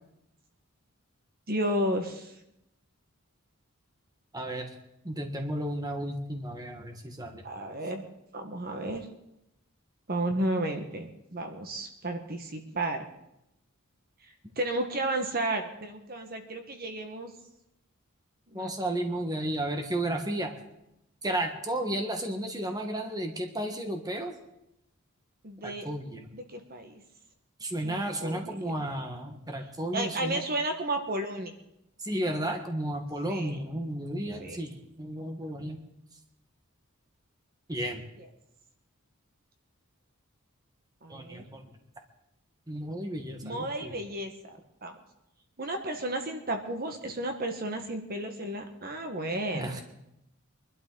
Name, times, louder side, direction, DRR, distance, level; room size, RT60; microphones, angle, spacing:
voice 1, 1.5-2.3 7.4-8.1 8.3-9.1 10.1-13.0 14.2-17.3 18.5-18.7 25.4-25.9 26.3-27.0 27.8-28.7 29.9-31.5 33.3-33.6 34.4-34.6 38.2-38.3 41.0-41.4 43.4-45.0 45.6-49.8, right 1 dB, 45° right, 5 dB, 1.4 m, -33 dB
voice 2, 4.3-4.7 5.0-7.4 18.5-20.5 21.2-24.3 25.6-26.3 27.6-30.4 32.0-35.8 37.7-38.0 41.1-41.7 42.7-44.0 49.5-49.8, right 1 dB, 20° right, 3 dB, 1.5 m, -33 dB
23.5 x 12.0 x 3.9 m, 0.84 s
head